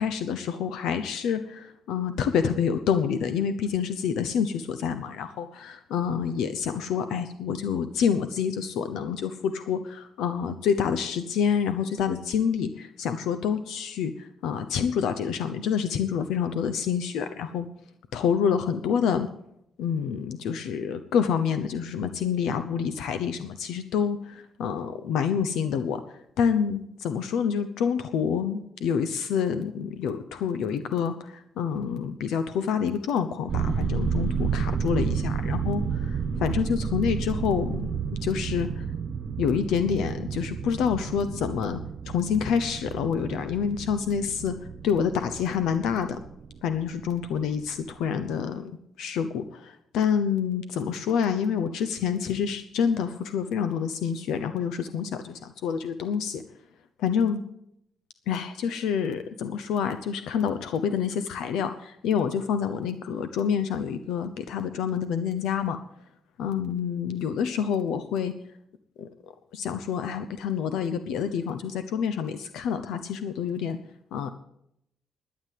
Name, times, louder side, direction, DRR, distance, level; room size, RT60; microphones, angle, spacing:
voice 1, 0.0-17.7 18.1-19.3 19.8-38.9 39.4-41.8 42.0-46.2 46.6-56.4 57.0-57.4 58.3-65.8 66.4-68.4 69.0-73.8 74.1-74.3, left 7 dB, 85° left, 9 dB, 0.9 m, -27 dB
sound 1, 33.5-48.0 48.3-48.4, right 6 dB, 45° right, 1.1 m, -31 dB
12.0 x 9.6 x 7.7 m, 0.75 s
cardioid pair, 160°, 0 cm